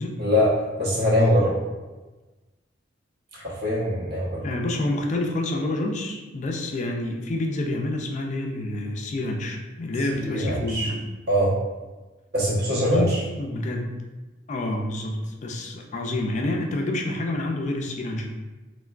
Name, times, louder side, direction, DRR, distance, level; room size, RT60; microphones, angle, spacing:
voice 1, 0.2-1.6 3.3-4.5 10.1-10.9 11.3-11.6 12.3-13.2, equal, 55° right, -6 dB, 0.9 m, -22 dB
voice 2, 4.4-11.0 12.8-13.9 14.5-18.3, left 1 dB, 40° left, 2 dB, 0.3 m, -28 dB
3.3 x 2.2 x 2.3 m, 1.2 s
head